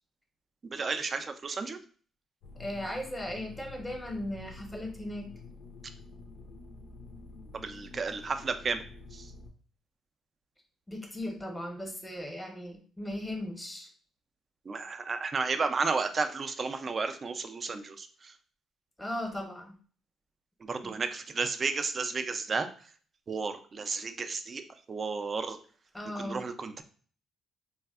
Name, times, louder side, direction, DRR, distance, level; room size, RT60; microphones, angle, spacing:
voice 1, 0.6-1.8 7.5-8.8 9.1-9.3 14.7-18.3 20.6-22.7 23.3-24.6 24.9-25.6 26.2-26.8, right 4 dB, 40° right, 8 dB, 0.3 m, -32 dB
sound 1, 2.4-9.5, left 3 dB, 85° left, 0.4 m, -48 dB
voice 2, 2.6-5.3 10.9-13.9 19.0-19.7 20.8-21.0 25.9-26.4, left 1 dB, 5° left, 2 dB, 0.7 m, -37 dB
3.3 x 2.0 x 2.3 m, 0.43 s
cardioid pair, 90°, 0 cm